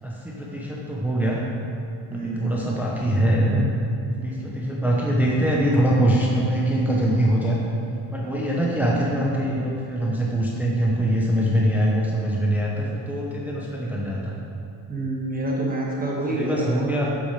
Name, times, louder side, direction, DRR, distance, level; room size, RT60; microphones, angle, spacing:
voice 1, 0.0-1.4 2.1-3.7 4.1-7.6 8.1-14.4 16.3-17.1, right 1 dB, 5° right, -4 dB, 0.8 m, -23 dB
voice 2, 2.1-2.6 8.9-9.1 14.9-16.9, right 1 dB, 20° right, -3 dB, 1.3 m, -27 dB
8.1 x 7.0 x 5.7 m, 2.5 s
cardioid pair, 170°, 45 cm